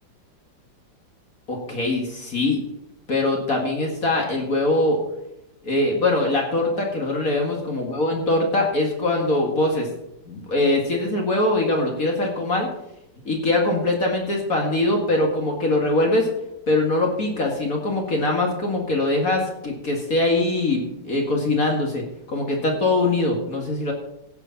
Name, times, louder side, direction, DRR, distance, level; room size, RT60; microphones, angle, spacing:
voice 1, 1.5-2.6 3.1-5.0 5.6-9.9 10.3-12.7 13.3-16.3 16.7-23.9, left 2 dB, 50° left, 1 dB, 2.2 m, -22 dB
16.0 x 6.7 x 5.8 m, 0.84 s
omnidirectional pair, 2.0 m